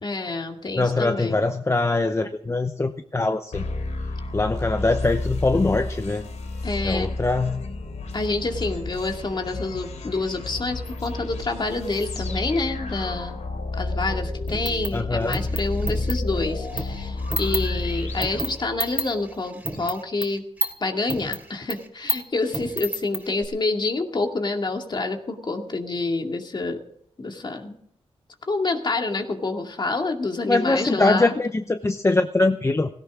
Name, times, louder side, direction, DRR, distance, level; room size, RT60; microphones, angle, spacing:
voice 1, 0.0-1.4 6.6-7.1 8.1-13.4 13.8-20.4 20.8-26.8 27.2-27.8 28.4-31.3, left 3 dB, 40° left, 4 dB, 2.3 m, -27 dB
voice 2, 0.8-3.6 4.3-6.3 6.8-7.6 14.9-15.4 30.5-32.9, left 2 dB, 25° left, 8 dB, 0.8 m, -22 dB
sound 1, 3.5-19.1, left 2 dB, 90° left, 2.9 m, -31 dB
sound 2, 14.5-17.7 18.1-20.7 21.0-23.5, right 2 dB, 15° right, 2.9 m, -29 dB
17.0 x 17.0 x 3.7 m, 0.69 s
wide cardioid pair, 95°, 12 cm